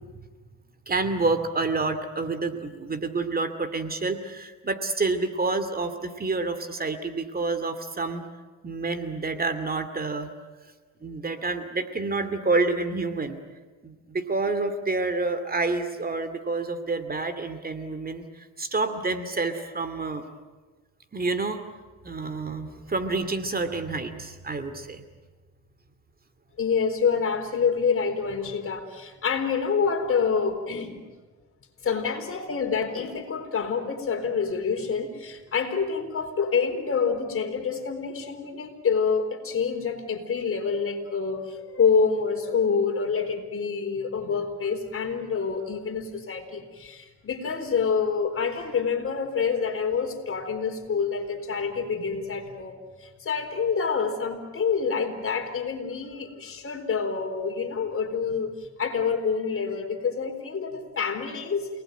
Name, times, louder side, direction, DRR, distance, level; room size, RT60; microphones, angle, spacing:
voice 1, 0.9-8.2 8.6-10.3 11.0-13.4 13.8-20.2 21.1-21.6 22.0-25.0, right 3 dB, 30° right, 10 dB, 2.5 m, -28 dB
voice 2, 26.6-31.0 31.8-52.7 53.0-58.5 58.8-61.7, left 5 dB, 45° left, 5 dB, 4.2 m, -27 dB
29.0 x 19.5 x 9.2 m, 1.3 s
cardioid pair, 90°, 30 cm